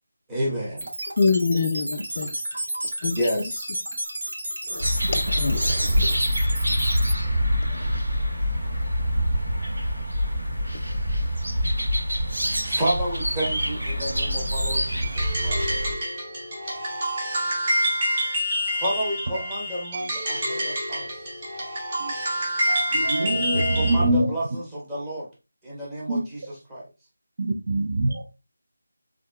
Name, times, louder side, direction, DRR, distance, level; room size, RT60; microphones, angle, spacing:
voice 1, 0.3-0.8 3.2-3.7 12.6-15.6 18.8-21.2 23.5-25.3 25.6-26.9, equal, 10° right, 1.1 m, -30 dB
sound 1, 0.8-7.1, right 1 dB, 70° right, 2.2 m, -32 dB
voice 2, 1.2-2.3 3.0-3.4 4.7-6.2, left 4 dB, 35° left, 0.3 m, -26 dB
sound 2, 4.8-15.9, equal, 90° right, 2.2 m, -25 dB
sound 3, 15.0-24.0, equal, 30° right, 1.6 m, -27 dB
voice 3, 22.7-24.3 26.1-26.2 27.4-28.2, right 1 dB, 45° right, 0.5 m, -24 dB
4.6 x 3.6 x 2.3 m
figure-of-eight pair, 170°, 0 cm